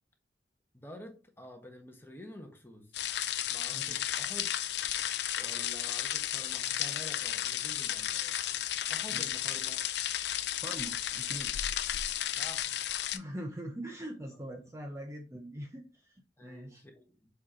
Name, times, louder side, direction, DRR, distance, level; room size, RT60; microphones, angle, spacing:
voice 1, 0.7-3.0 3.5-4.5 5.4-8.1 8.9-9.8 12.4-12.7 16.4-17.3, left 1 dB, 10° left, 3 dB, 1.2 m, -49 dB
sound 1, 2.9-13.2, left 11 dB, 65° left, 0.5 m, -33 dB
voice 2, 3.7-4.0 9.1-9.3 10.6-11.5 13.1-16.8, right 1 dB, 15° right, 3 dB, 0.7 m, -42 dB
7.4 x 4.3 x 3.0 m, 0.34 s
head